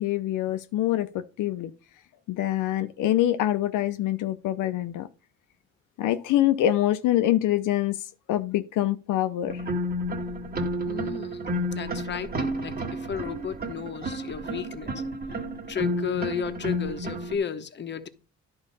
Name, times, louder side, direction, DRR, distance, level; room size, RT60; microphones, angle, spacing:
voice 1, 0.0-1.7 2.3-5.1 6.0-8.0 8.3-9.6, left 13 dB, 85° left, 0.7 m, -25 dB
sound 1, 9.5-17.4, equal, 30° right, 1.6 m, -31 dB
voice 2, 10.9-14.9 15.7-18.1, left 8 dB, 35° left, 1.0 m, -33 dB
11.0 x 3.9 x 5.3 m
cardioid pair, 90°, 30 cm